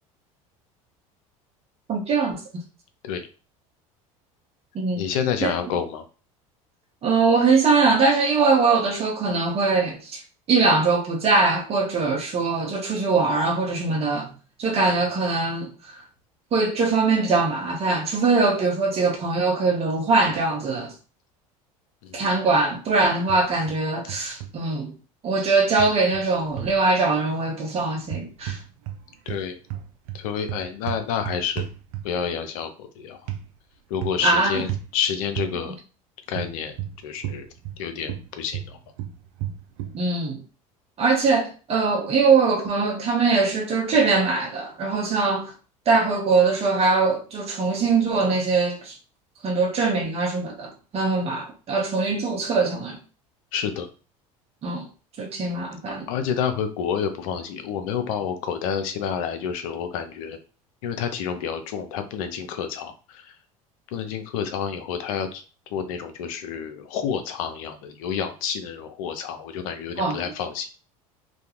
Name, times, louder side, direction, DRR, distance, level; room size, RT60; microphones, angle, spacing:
voice 1, 1.9-2.6 4.7-5.0 5.4-5.5 7.0-10.2 10.5-14.3 14.6-15.7 16.5-20.9 22.1-24.9 25.2-28.6 34.2-34.6 39.9-40.4 41.0-45.5 45.9-48.9 49.4-53.0 54.6-54.8 55.2-56.1 70.0-70.2, right 4 dB, 35° right, 0.8 m, -22 dB
voice 2, 5.0-6.0 14.9-15.0 22.0-22.4 29.3-29.6 30.1-31.6 32.0-33.3 33.9-35.8 36.3-36.7 37.0-37.5 37.8-38.8 53.5-53.9 55.9-60.4 60.8-63.3 63.9-65.4 65.7-70.7, left 7 dB, 70° left, 0.5 m, -29 dB
sound 1, 23.3-23.8 24.1-24.5 25.8-26.8 28.0-29.0 29.3-32.3 33.3-33.4 34.0-34.3 34.7-34.9 35.4-35.5 36.3-37.8 38.1-40.0, right 11 dB, 70° right, 0.4 m, -33 dB
2.4 x 2.2 x 2.9 m
hypercardioid pair, 75°, 18 cm